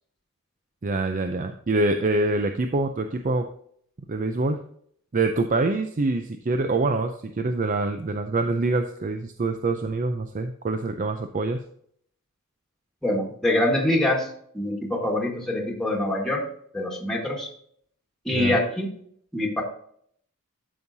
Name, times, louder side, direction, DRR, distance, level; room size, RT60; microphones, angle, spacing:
voice 1, 0.8-3.5 4.1-4.6 5.1-11.6 18.3-18.6, right 2 dB, 35° right, 7 dB, 0.5 m, -25 dB
voice 2, 13.0-14.3 14.5-16.4 16.7-17.5 18.2-18.9 19.3-19.6, left 1 dB, ahead, -1 dB, 1.6 m, -24 dB
12.5 x 5.5 x 2.7 m, 0.64 s
head